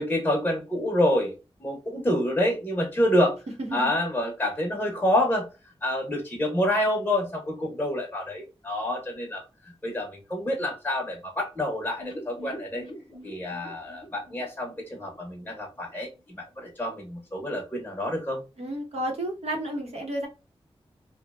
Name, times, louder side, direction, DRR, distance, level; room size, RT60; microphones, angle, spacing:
voice 1, 0.0-3.4 3.7-5.5 5.8-12.9 13.2-18.4, left 1 dB, 15° left, 0 dB, 0.7 m, -27 dB
voice 2, 3.6-3.9 18.6-20.3, right 1 dB, 80° right, 1 dB, 0.9 m, -31 dB
sound 1, 12.0-15.8 16.1-16.2 16.5-16.6, equal, 50° left, 0.7 m, -44 dB
2.6 x 2.1 x 2.2 m, 0.29 s
wide cardioid pair, 85°, 11 cm